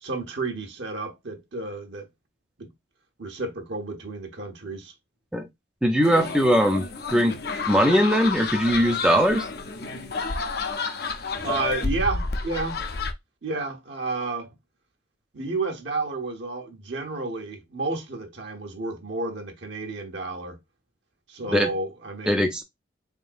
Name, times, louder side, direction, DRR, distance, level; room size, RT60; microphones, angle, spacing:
voice 1, 0.0-2.1 2.6-2.7 3.2-4.9 11.4-12.8 13.4-14.5 15.3-20.6 21.3-22.6, right 3 dB, 70° right, 1.1 m, -31 dB
voice 2, 5.8-6.8 7.1-7.3 7.7-9.5 21.5-21.7 22.3-22.6, equal, 5° right, 0.4 m, -20 dB
sound 1, 6.0-13.1, left 4 dB, 55° left, 0.6 m, -30 dB
3.8 x 3.6 x 2.5 m
head